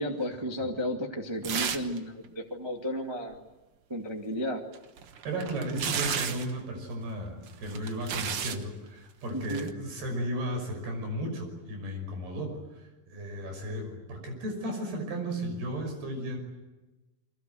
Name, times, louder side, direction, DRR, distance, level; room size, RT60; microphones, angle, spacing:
voice 1, 0.0-3.4 3.9-4.6 9.3-9.7, equal, 15° right, 1 dB, 0.9 m, -33 dB
sound 1, 1.4-2.0 2.2-2.3 4.7-6.5 7.5-8.6 9.4-9.7, right 7 dB, 65° right, 1.4 m, -33 dB
voice 2, 5.2-16.4, right 1 dB, 85° right, 5 dB, 7.8 m, -35 dB
29.5 x 23.0 x 7.8 m, 1.1 s
omnidirectional pair, 4.5 m